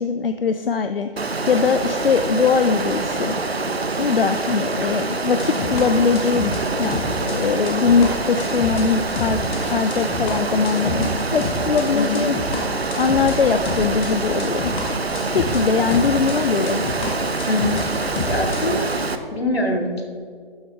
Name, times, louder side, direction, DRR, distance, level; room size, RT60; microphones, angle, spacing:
voice 1, 0.0-3.4 4.0-6.5 6.8-7.0 7.2-9.4 9.7-12.3 13.0-14.7 15.3-16.8, left 5 dB, 65° left, 9 dB, 0.6 m, -21 dB
Water, 1.2-19.2, right 3 dB, 85° right, 0.9 m, -25 dB
sound 1, 5.4-11.9 12.1-18.7, left 3 dB, 10° left, 0.7 m, -29 dB
voice 2, 17.5-18.9 19.3-20.0, left 1 dB, 85° left, 1 dB, 2.3 m, -24 dB
12.0 x 8.0 x 3.6 m, 2.2 s
figure-of-eight pair, 145°, 30 cm